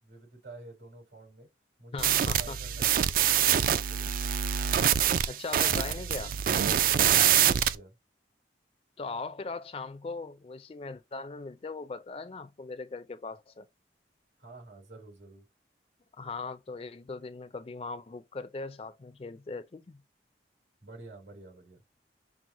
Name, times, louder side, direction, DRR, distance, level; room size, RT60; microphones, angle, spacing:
voice 1, 0.0-1.5 1.8-4.2 6.8-7.9 14.4-15.5 20.8-21.8, right 2 dB, 75° right, 3.2 m, -49 dB
voice 2, 1.9-2.6 5.3-6.3 9.0-13.7 16.2-20.0, left 3 dB, 30° left, 0.3 m, -39 dB
sound 1, 2.0-7.7, right 10 dB, 50° right, 0.3 m, -25 dB
6.1 x 2.0 x 3.8 m
head